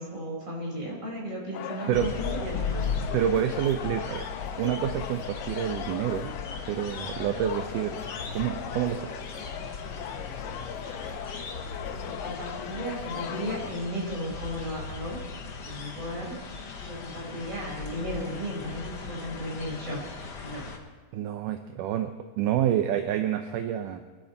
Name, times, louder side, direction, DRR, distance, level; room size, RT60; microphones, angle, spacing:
voice 1, 0.0-2.9 11.9-15.2 15.6-16.4 16.8-20.0 20.4-20.7, equal, 20° right, -3 dB, 5.4 m, -35 dB
sound 1, 1.5-13.7, left 9 dB, 85° left, 2.4 m, -39 dB
sound 2, 1.9-20.8, left 5 dB, 65° left, 1.0 m, -38 dB
voice 2, 3.1-4.3 4.6-6.4 6.7-8.0 8.3-9.1 21.1-24.0, right 10 dB, 75° right, 7 dB, 2.2 m, -28 dB
25.0 x 12.0 x 4.4 m, 1.4 s
omnidirectional pair, 4.0 m